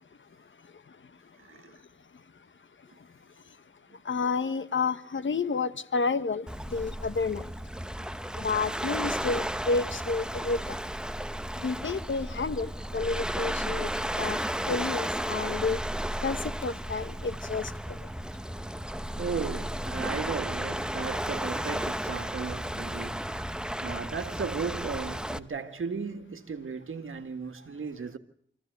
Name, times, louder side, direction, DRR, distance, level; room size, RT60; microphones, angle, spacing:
voice 1, 1.4-1.7 3.9-4.0 19.2-28.2, right 5 dB, 80° right, 1.8 m, -36 dB
voice 2, 4.0-7.5 8.4-10.8 11.6-13.9 14.2-14.4 14.7-15.8 16.2-17.7, left 4 dB, 70° left, 1.2 m, -30 dB
Waves surf, 6.5-25.4, equal, 5° right, 1.0 m, -33 dB
26.0 x 15.5 x 8.1 m
wide cardioid pair, 65°, 21 cm